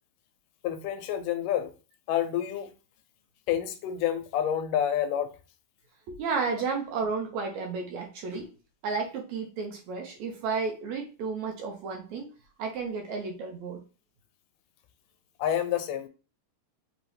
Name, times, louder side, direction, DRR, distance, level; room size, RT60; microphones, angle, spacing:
voice 1, 0.6-1.7 2.1-2.7 3.5-5.3 15.4-16.1, left 10 dB, 85° left, 2.1 m, -28 dB
voice 2, 6.1-8.5 8.8-12.3 12.6-13.8, right 4 dB, 70° right, 1.9 m, -32 dB
5.4 x 2.9 x 3.1 m
omnidirectional pair, 3.8 m